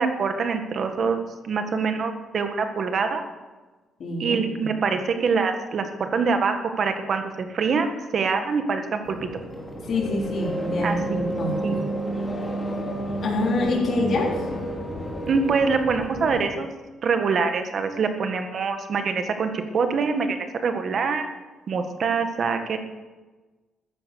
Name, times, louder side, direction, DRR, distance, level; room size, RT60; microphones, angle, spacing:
voice 1, 0.0-3.2 4.2-9.2 10.8-11.0 11.6-11.8 15.3-16.7 17.0-21.2 21.7-22.8, right 5 dB, 45° right, 7 dB, 1.7 m, -24 dB
voice 2, 4.0-4.8 9.8-11.7 13.2-14.4, left 2 dB, 50° left, -1 dB, 4.0 m, -26 dB
sound 1, 9.0-16.4, right 1 dB, 15° left, 2.5 m, -30 dB
14.0 x 10.0 x 6.9 m, 1.2 s
cardioid pair, 135°, 0 cm